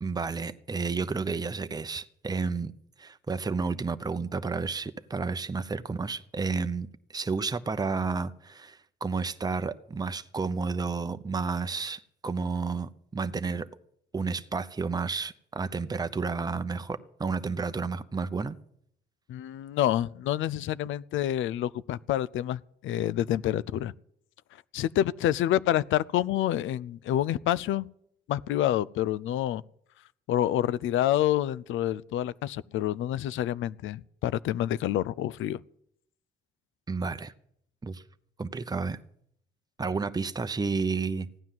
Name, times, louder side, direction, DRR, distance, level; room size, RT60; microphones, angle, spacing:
voice 1, 0.0-2.7 3.0-13.7 14.1-18.6 36.9-37.3 37.8-38.0 38.4-39.0 39.8-41.3, right 4 dB, 20° right, 0.8 m, -31 dB
voice 2, 19.3-23.9 24.7-27.9 28.3-29.6 30.3-35.6, left 12 dB, 80° left, 0.5 m, -28 dB
16.0 x 9.7 x 7.5 m
cardioid pair, 90°, 20 cm